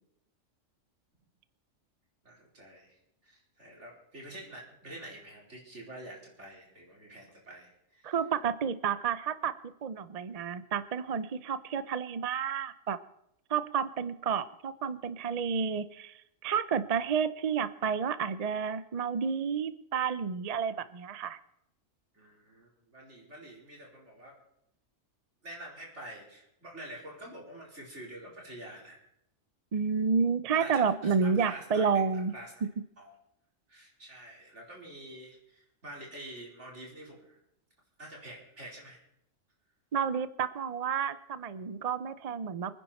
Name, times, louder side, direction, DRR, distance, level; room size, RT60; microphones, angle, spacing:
voice 1, 2.2-3.0 3.2-8.1 20.7-20.9 22.1-24.4 25.4-29.0 30.6-31.9 32.3-32.5 33.0-33.1 33.7-37.4 38.0-39.0, right 1 dB, 65° right, -2 dB, 4.8 m, -47 dB
voice 2, 8.0-9.5 9.8-13.0 13.5-21.4 29.7-32.3 39.9-42.7, right 6 dB, 45° right, 14 dB, 0.5 m, -30 dB
25.0 x 10.0 x 4.3 m, 0.79 s
omnidirectional pair, 1.3 m